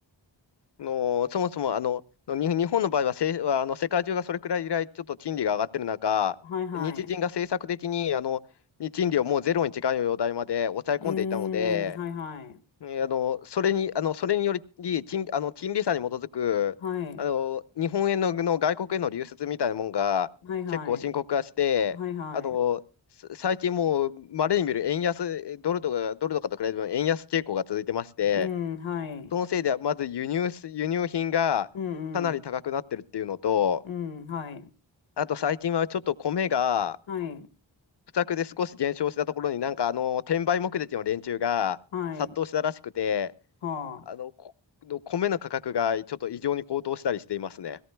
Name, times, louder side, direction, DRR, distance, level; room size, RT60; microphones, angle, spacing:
voice 1, 0.8-2.0 2.3-6.4 6.7-8.4 8.8-12.0 12.8-16.7 17.2-20.3 20.9-22.0 22.3-22.8 23.3-28.5 29.3-31.7 32.1-33.8 35.2-37.0 38.1-41.8 42.4-43.3 44.1-44.5 44.8-47.8, left 8 dB, 60° left, 0.7 m, -27 dB
voice 2, 6.5-7.1 11.0-12.6 16.8-17.2 20.4-21.1 21.9-22.6 28.3-29.3 31.7-32.4 33.8-34.7 37.1-37.5 41.9-42.3 43.6-44.1, left 7 dB, 80° left, 1.1 m, -33 dB
22.0 x 17.5 x 2.2 m
wide cardioid pair, 100°, 46 cm